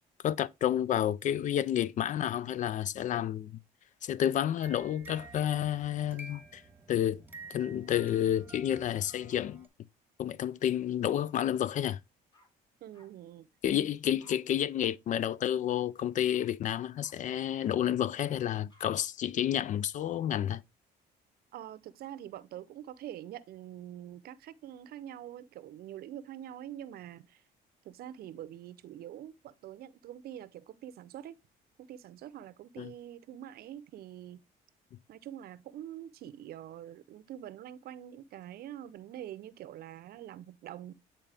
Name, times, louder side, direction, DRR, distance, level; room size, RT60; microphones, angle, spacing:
voice 1, 0.2-3.5 4.0-6.6 6.9-7.2 7.5-9.7 10.2-12.0 13.6-20.6 32.8-32.9, left 10 dB, 50° left, 0.4 m, -30 dB
sound 1, 4.6-9.7, right 3 dB, 10° right, 1.1 m, -51 dB
sound 2, 11.3-11.4 11.8-12.5 12.9-13.1 14.2-14.4 14.7-14.9 15.2-15.3 15.7-15.8 16.3-16.5 17.0-17.1 17.6-17.8 18.7-18.9, equal, 25° left, 2.3 m, -62 dB
voice 2, 12.8-13.5 21.5-27.4 27.8-31.3 31.8-34.4 35.1-40.9, right 11 dB, 65° right, 0.7 m, -45 dB
8.8 x 4.3 x 3.3 m
cardioid pair, 110°, 17 cm